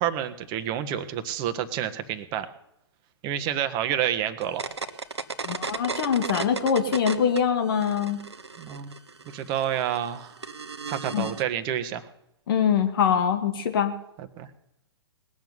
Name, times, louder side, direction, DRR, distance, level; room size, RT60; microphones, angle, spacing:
voice 1, 0.0-2.5 3.2-4.6 8.6-8.9 9.2-10.4 10.9-12.0 14.2-14.5, right 10 dB, 35° right, 9 dB, 1.4 m, -29 dB
sound 1, 4.4-7.4 7.7-11.4, right 4 dB, 85° right, 1.2 m, -35 dB
voice 2, 5.4-8.2 11.1-11.3 12.5-13.9, left 7 dB, 55° left, 7 dB, 2.0 m, -23 dB
20.0 x 7.2 x 9.7 m, 0.77 s
figure-of-eight pair, 120°, 14 cm